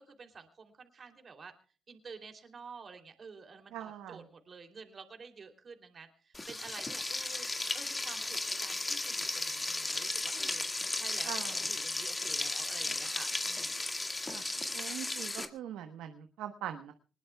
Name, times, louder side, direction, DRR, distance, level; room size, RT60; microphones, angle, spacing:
voice 1, 0.0-1.5 1.9-7.5 7.7-10.6 10.9-11.3 11.7-13.8, right 5 dB, 45° right, 6 dB, 3.1 m, -50 dB
voice 2, 3.7-4.3 11.2-11.7 14.3-14.4 14.7-16.9, right 10 dB, 90° right, 7 dB, 1.1 m, -42 dB
Frying (food), 6.3-15.5, left 2 dB, 20° left, 1.9 m, -35 dB
24.5 x 20.0 x 2.3 m, 0.38 s
cardioid pair, 90°, 0 cm